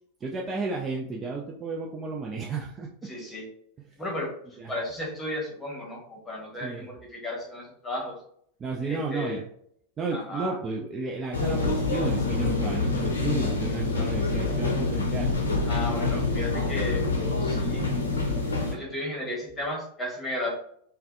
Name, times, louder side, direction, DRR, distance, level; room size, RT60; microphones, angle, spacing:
voice 1, 0.2-3.1 4.6-4.7 6.6-6.9 8.6-9.5 10.0-15.3 17.5-17.7, right 4 dB, 20° right, -1 dB, 0.3 m, -32 dB
voice 2, 3.0-3.5 4.0-8.2 8.8-9.4 10.1-10.6 15.7-17.8 18.7-20.5, left 1 dB, 10° left, -2 dB, 1.1 m, -34 dB
sound 1, 11.3-18.7, left 3 dB, 75° left, 0.6 m, -26 dB
3.3 x 2.2 x 2.3 m, 0.66 s
figure-of-eight pair, 90°, 0 cm